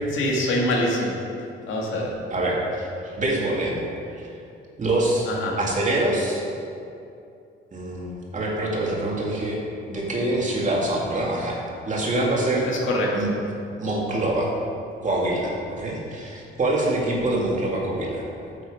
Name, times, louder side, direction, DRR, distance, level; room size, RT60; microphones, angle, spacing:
voice 1, 0.1-1.2 1.7-2.1 5.4-5.6 12.6-13.1, left 1 dB, 80° left, -2 dB, 2.0 m, -24 dB
voice 2, 2.3-3.8 4.1-4.3 4.8-5.3 5.6-6.4 7.7-9.6 9.9-11.6 11.9-12.7 13.1-13.3 13.8-14.5 15.0-18.2, right 1 dB, 40° right, -3 dB, 2.4 m, -25 dB
9.9 x 6.7 x 5.1 m, 2.6 s
cardioid pair, 90°, 20 cm